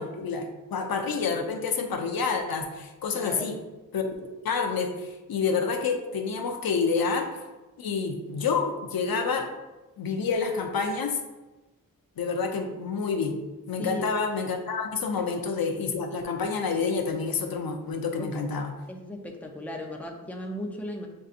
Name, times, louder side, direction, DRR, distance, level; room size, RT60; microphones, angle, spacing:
voice 1, 0.0-3.6 3.9-7.3 7.8-9.5 10.0-11.2 12.2-18.7, left 5 dB, 85° left, 4 dB, 0.6 m, -28 dB
voice 2, 3.1-3.5 13.8-14.1 15.2-15.3 18.2-18.3 18.9-21.1, left 1 dB, 5° left, 1 dB, 0.5 m, -36 dB
7.5 x 2.7 x 2.5 m, 1.1 s
wide cardioid pair, 135°, 35 cm